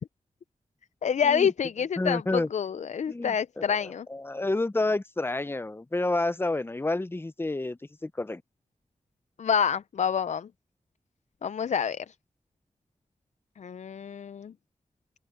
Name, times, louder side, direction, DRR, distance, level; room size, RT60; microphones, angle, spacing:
voice 1, 1.0-4.1 9.4-10.5 11.4-12.1 13.6-14.5, left 7 dB, 65° left, 0.4 m, -27 dB
voice 2, 2.0-2.5 3.1-8.4, left 2 dB, 15° left, 0.6 m, -29 dB
open air
wide cardioid pair, 80°, 13 cm